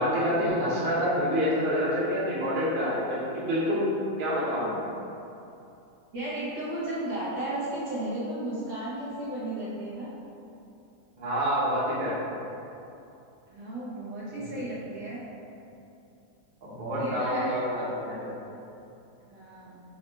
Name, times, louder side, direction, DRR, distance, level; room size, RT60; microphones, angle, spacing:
voice 1, 0.0-3.8 4.2-4.9 11.2-12.2 14.5-14.6 16.6-18.2, equal, 35° right, -9 dB, 0.9 m, -27 dB
voice 2, 6.1-10.1 13.5-15.3 16.9-17.6 19.2-19.8, right 1 dB, 85° right, -9 dB, 1.7 m, -34 dB
4.3 x 2.4 x 3.6 m, 2.7 s
omnidirectional pair, 1.9 m